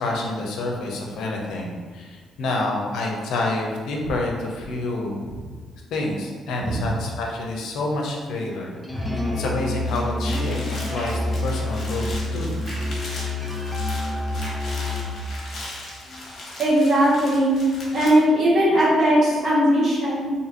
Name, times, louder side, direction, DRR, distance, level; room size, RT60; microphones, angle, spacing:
voice 1, 0.0-5.2 5.9-8.7 9.3-12.5, left 2 dB, 80° left, 0 dB, 0.5 m, -28 dB
sound 1, 8.4-16.4, equal, 5° left, 0.4 m, -36 dB
Musical instrument, 8.9-15.2, left 2 dB, 30° right, 1.5 m, -28 dB
sound 2, 9.8-18.1, left 1 dB, 55° left, 0.8 m, -38 dB
voice 2, 16.6-17.6 17.9-20.3, equal, 55° right, -6 dB, 1.0 m, -19 dB
2.8 x 2.6 x 2.5 m, 1.5 s
cardioid pair, 90°, 0 cm